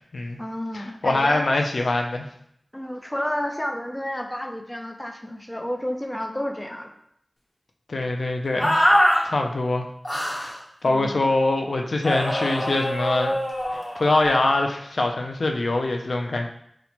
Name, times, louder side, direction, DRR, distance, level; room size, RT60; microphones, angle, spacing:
voice 1, 0.4-1.5 2.7-6.9 10.8-11.3, left 1 dB, 15° left, 4 dB, 0.4 m, -31 dB
voice 2, 1.0-2.3 7.9-8.8 9.2-9.9 10.4-10.5 10.8-13.3 13.7-16.5, left 2 dB, 85° left, 3 dB, 0.3 m, -23 dB
sound 1, 8.6-9.2 10.0-10.5 12.0-14.4, equal, 35° left, 0.9 m, -23 dB
4.1 x 2.1 x 2.8 m, 0.70 s
wide cardioid pair, 45°, 0 cm